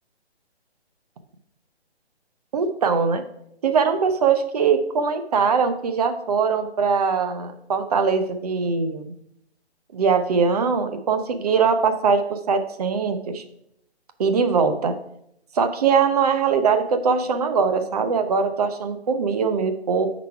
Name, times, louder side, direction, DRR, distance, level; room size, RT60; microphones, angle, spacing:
voice 1, 2.5-3.2 3.6-9.1 9.9-13.4 14.2-14.9 15.5-20.1, right 5 dB, 35° right, 8 dB, 0.8 m, -21 dB
9.2 x 4.0 x 4.7 m, 0.77 s
hypercardioid pair, 155°, 33 cm